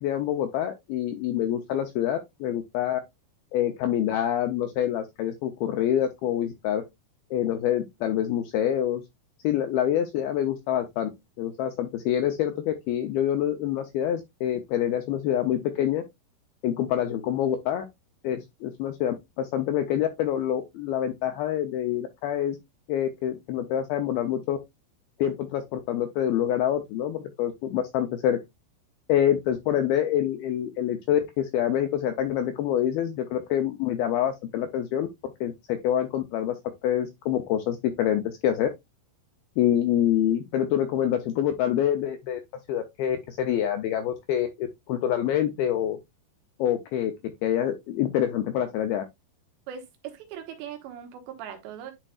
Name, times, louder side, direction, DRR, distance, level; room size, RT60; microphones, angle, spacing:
voice 1, 0.0-3.0 3.5-6.8 7.3-9.0 9.4-11.1 11.4-16.0 16.6-17.8 18.2-22.6 22.9-24.6 25.2-28.4 29.1-35.1 35.4-36.6 36.8-38.7 39.6-42.4 42.7-46.0 46.6-47.1 47.4-49.0, left 10 dB, 80° left, 2.2 m, -26 dB
voice 2, 49.7-51.9, right 9 dB, 85° right, 3.4 m, -40 dB
10.5 x 4.4 x 2.4 m
omnidirectional pair, 5.1 m